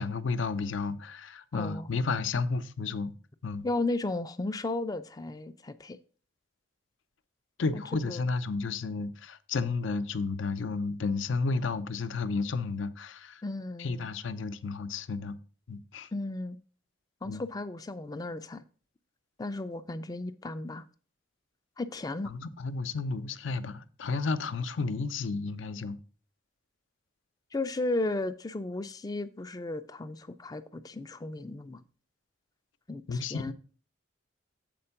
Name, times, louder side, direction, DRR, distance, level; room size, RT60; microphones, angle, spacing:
voice 1, 0.0-3.1 3.4-3.7 7.6-13.4 13.8-15.4 15.7-16.1 17.2-17.4 22.3-26.0 33.1-33.5, left 4 dB, 75° left, 0.6 m, -32 dB
voice 2, 1.5-1.9 3.6-6.0 7.7-8.2 13.4-14.1 16.1-16.6 17.2-18.6 19.4-20.8 21.8-22.3 27.5-31.8 32.9-33.5, left 2 dB, 20° left, 0.4 m, -34 dB
7.7 x 4.4 x 5.7 m
head